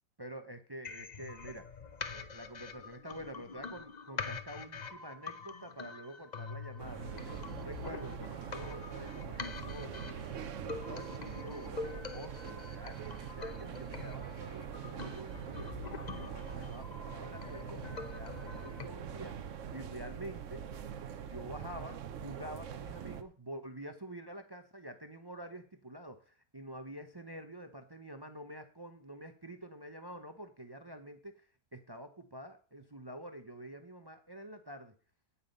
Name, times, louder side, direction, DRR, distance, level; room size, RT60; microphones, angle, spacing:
voice 1, 0.2-1.7 2.1-19.4 19.7-20.7 21.2-34.9, right 1 dB, 30° right, 8 dB, 0.4 m, -48 dB
sound 1, 0.8-18.8, left 5 dB, 50° left, 0.5 m, -45 dB
sound 2, 6.8-23.2, right 8 dB, 55° right, 0.9 m, -43 dB
9.1 x 8.5 x 5.3 m, 0.38 s
omnidirectional pair, 1.9 m